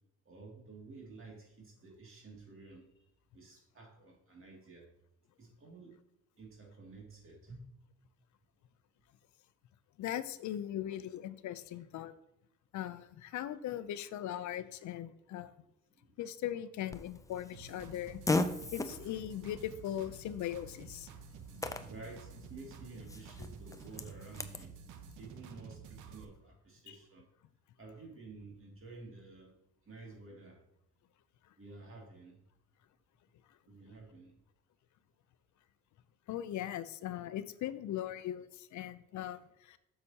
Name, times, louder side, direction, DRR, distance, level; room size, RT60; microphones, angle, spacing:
voice 1, 0.2-4.9 5.4-6.0 6.4-7.6 15.6-16.2 21.3-27.3 27.8-29.6 29.8-30.6 31.6-32.4 33.7-34.4, right 3 dB, 45° right, 0 dB, 2.4 m, -52 dB
voice 2, 10.0-12.1 12.7-15.5 16.2-18.2 18.7-21.1 36.3-39.8, left 11 dB, 70° left, 14 dB, 0.6 m, -39 dB
Fart, 16.9-24.7, left 2 dB, 10° left, 0.5 m, -39 dB
sound 1, 17.5-26.2, right 6 dB, 85° right, 0.8 m, -51 dB
8.1 x 6.7 x 2.8 m, 0.83 s
cardioid pair, 90°, 30 cm